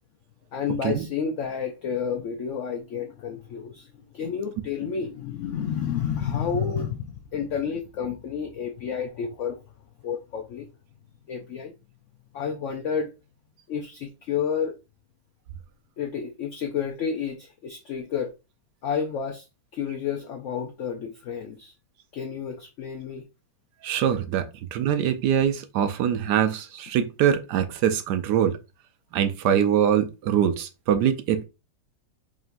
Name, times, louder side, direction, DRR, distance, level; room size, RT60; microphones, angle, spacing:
voice 1, 0.5-3.9 4.1-9.6 10.0-10.7 11.3-11.7 12.3-13.1 13.7-14.7 16.0-18.3 18.8-19.4 19.7-21.7 22.1-23.2, left 7 dB, 80° left, 0.6 m, -30 dB
voice 2, 23.8-24.5 24.7-28.6 29.1-31.4, right 9 dB, 75° right, 1.1 m, -23 dB
5.0 x 2.9 x 2.5 m
omnidirectional pair, 1.9 m